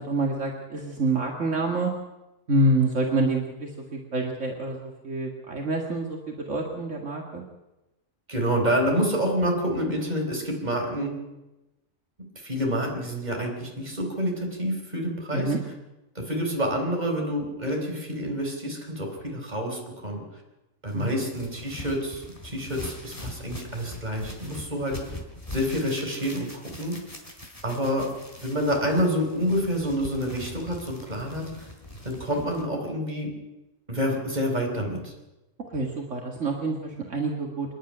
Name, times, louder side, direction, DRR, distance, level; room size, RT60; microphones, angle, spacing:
voice 1, 0.1-1.9 2.5-7.4 15.3-15.6 20.9-21.1 35.7-37.7, right 2 dB, 65° right, 1 dB, 2.2 m, -27 dB
voice 2, 8.3-11.1 12.4-15.5 16.1-20.2 20.8-25.2 25.5-27.0 27.6-28.1 28.4-31.7 32.0-33.3 33.9-35.1, equal, 30° right, 1 dB, 4.5 m, -28 dB
sound 1, 20.9-32.6, left 1 dB, 25° left, 3.3 m, -42 dB
26.0 x 10.5 x 9.9 m, 1.0 s
omnidirectional pair, 1.4 m